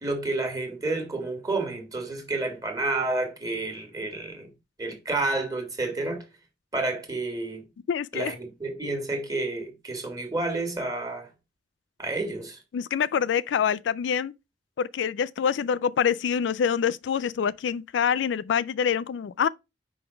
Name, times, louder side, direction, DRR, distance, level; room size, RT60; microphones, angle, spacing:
voice 1, 0.0-4.5 4.8-6.3 6.7-7.6 8.1-11.3 12.0-12.6, right 2 dB, 20° right, 1.6 m, -30 dB
voice 2, 7.9-8.3 12.7-14.3 14.8-19.5, left 7 dB, 85° left, 0.3 m, -26 dB
5.1 x 3.9 x 5.5 m
head